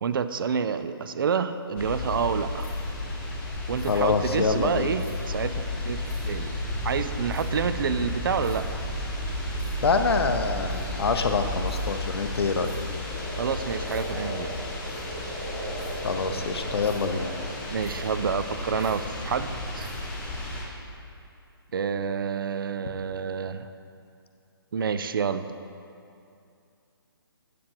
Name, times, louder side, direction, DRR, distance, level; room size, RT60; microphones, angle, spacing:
voice 1, 0.0-2.7 3.7-6.5 6.8-8.8 13.4-14.5 17.7-19.9 21.7-23.7 24.7-25.5, right 6 dB, 60° right, 11 dB, 0.4 m, -28 dB
sound 1, 1.8-20.6, left 1 dB, 10° left, 0.5 m, -33 dB
voice 2, 3.9-4.9 9.8-12.8 13.0-13.1 16.0-17.3, left 4 dB, 85° left, 7 dB, 0.7 m, -26 dB
Frog, 13.1-18.1, equal, 30° right, 1.5 m, -38 dB
8.1 x 7.6 x 2.9 m, 2.6 s
hypercardioid pair, 170°, 13 cm